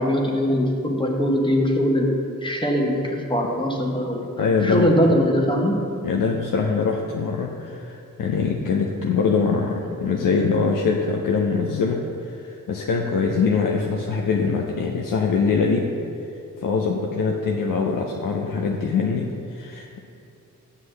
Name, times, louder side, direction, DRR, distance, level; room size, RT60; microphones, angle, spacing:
voice 1, 0.0-2.1 2.4-4.2 4.6-5.8, equal, 15° left, 0 dB, 1.0 m, -21 dB
voice 2, 4.4-5.2 6.0-12.0 12.3-15.9 16.6-20.0, left 5 dB, 75° left, 0 dB, 0.6 m, -23 dB
7.5 x 6.0 x 3.3 m, 2.5 s
cardioid pair, 50°, 33 cm